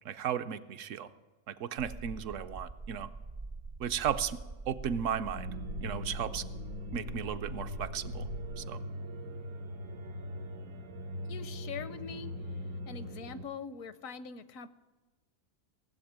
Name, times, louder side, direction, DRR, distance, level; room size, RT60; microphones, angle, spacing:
voice 1, 0.0-1.1 1.5-3.1 3.8-4.4 4.7-5.5 5.8-6.4 6.9-8.3 8.6-8.8, right 8 dB, 70° right, 10 dB, 0.9 m, -35 dB
sound 1, 1.8-8.6, right 3 dB, 45° right, 0.4 m, -44 dB
sound 2, 5.3-13.4, left 1 dB, 90° right, 1.6 m, -41 dB
voice 2, 11.2-12.6 12.9-14.7, left 6 dB, 75° left, 14 dB, 1.1 m, -43 dB
17.5 x 7.8 x 8.7 m, 1.2 s
omnidirectional pair, 1.4 m